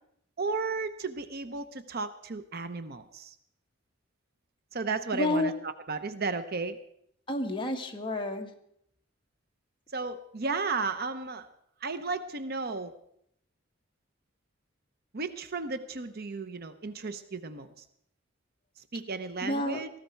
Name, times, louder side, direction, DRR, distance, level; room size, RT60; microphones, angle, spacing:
voice 1, 0.4-3.3 4.7-6.8 9.9-11.5 11.8-12.9 15.1-17.7 18.9-19.9, right 4 dB, 50° right, 10 dB, 0.8 m, -34 dB
voice 2, 5.1-5.5 7.3-8.5 19.4-19.8, left 1 dB, 25° left, 3 dB, 1.5 m, -30 dB
18.5 x 15.0 x 4.5 m, 0.72 s
head